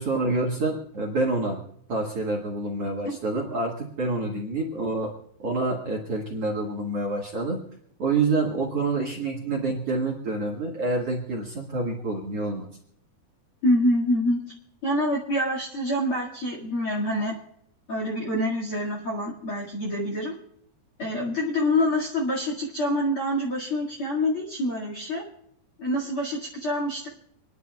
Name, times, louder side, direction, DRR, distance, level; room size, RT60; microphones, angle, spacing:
voice 1, 0.0-1.6 1.9-5.1 5.4-7.6 8.0-12.7, right 3 dB, 45° right, 0 dB, 2.1 m, -27 dB
voice 2, 13.6-14.4 14.8-17.3 17.9-20.3 21.0-25.2 25.8-27.1, left 1 dB, 40° left, -2 dB, 2.1 m, -26 dB
28.0 x 10.5 x 2.3 m, 0.70 s
omnidirectional pair, 4.9 m